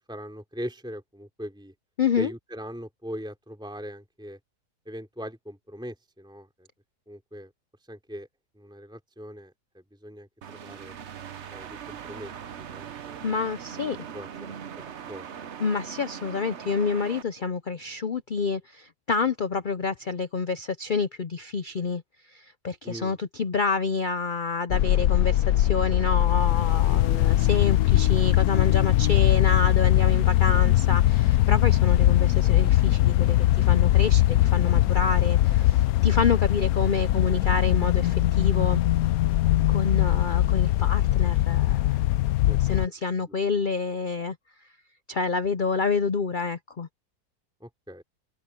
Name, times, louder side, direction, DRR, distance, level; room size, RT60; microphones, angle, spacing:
voice 1, 0.1-1.7 2.2-4.4 4.9-6.7 7.1-7.5 7.9-8.3 8.6-10.9 11.5-13.3 14.1-15.5 22.8-23.2 30.5-30.6 42.5-42.6 43.3-43.4 47.6-48.0, equal, ahead, 3.5 m, -40 dB
voice 2, 2.0-2.3 13.2-14.0 15.6-38.8 39.7-42.0 42.6-44.4 44.6-44.7 45.1-46.9, left 4 dB, 90° left, 0.4 m, -28 dB
sound 1, 10.4-17.2, right 8 dB, 50° right, 1.0 m, -40 dB
sound 2, 24.7-42.9, left 14 dB, 70° left, 0.9 m, -21 dB
omnidirectional pair, 1.8 m